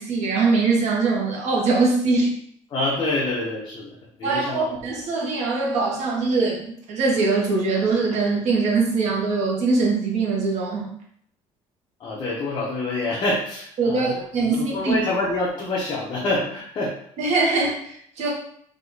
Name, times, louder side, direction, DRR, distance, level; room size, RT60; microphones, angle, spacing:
voice 1, 0.0-2.3 4.2-10.9 13.8-15.0 17.2-18.3, right 3 dB, 65° right, -2 dB, 1.5 m, -22 dB
voice 2, 2.7-4.7 12.0-14.1 14.5-16.9, left 2 dB, 35° left, -5 dB, 0.9 m, -26 dB
3.8 x 2.9 x 4.0 m, 0.66 s
cardioid pair, 150°, 13 cm